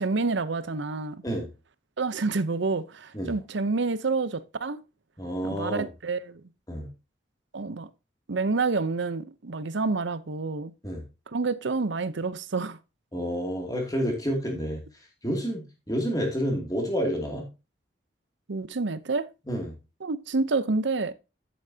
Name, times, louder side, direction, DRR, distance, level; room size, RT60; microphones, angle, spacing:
voice 1, 0.0-1.2 2.0-4.8 5.4-6.4 7.5-7.9 8.3-10.7 11.3-12.8 18.5-19.3 20.0-21.1, right 3 dB, 70° right, 0.7 m, -28 dB
voice 2, 5.2-5.9 6.7-6.9 10.8-11.0 13.1-14.8 15.2-17.5 19.5-19.7, equal, 20° left, 2.4 m, -29 dB
10.5 x 8.6 x 2.7 m
head